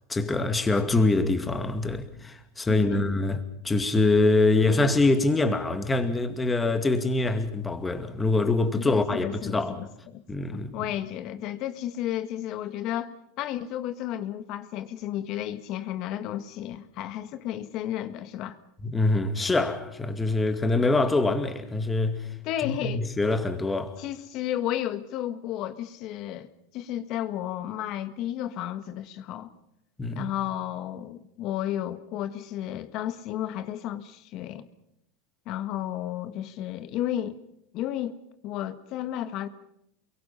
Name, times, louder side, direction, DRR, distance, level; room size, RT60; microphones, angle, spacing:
voice 1, 0.1-9.7 10.3-10.9 18.8-22.2 22.6-24.0 30.0-30.3, left 2 dB, 10° left, 2.3 m, -24 dB
voice 2, 2.7-3.0 8.7-10.2 10.5-13.1 13.4-18.6 22.4-23.1 24.0-29.5 30.1-34.7 35.4-37.4 37.7-38.2 38.4-39.5, left 12 dB, 50° left, 1.8 m, -33 dB
29.5 x 22.5 x 5.8 m
supercardioid pair, 125°, 0 cm